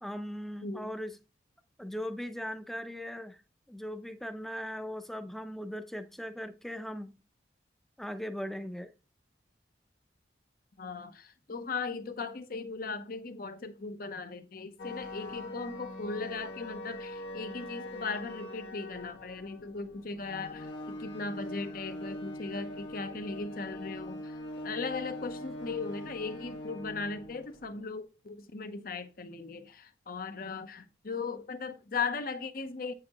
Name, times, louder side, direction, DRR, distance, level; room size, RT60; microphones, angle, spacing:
voice 1, 0.0-1.1 1.8-3.4 3.7-7.1 8.0-8.9, equal, ahead, 0.6 m, -39 dB
voice 2, 0.6-0.9 10.8-24.4 24.6-32.9, left 4 dB, 50° left, 0.8 m, -38 dB
sound 1, 14.8-27.8, left 1 dB, 80° left, 1.7 m, -42 dB
8.5 x 6.6 x 3.0 m
head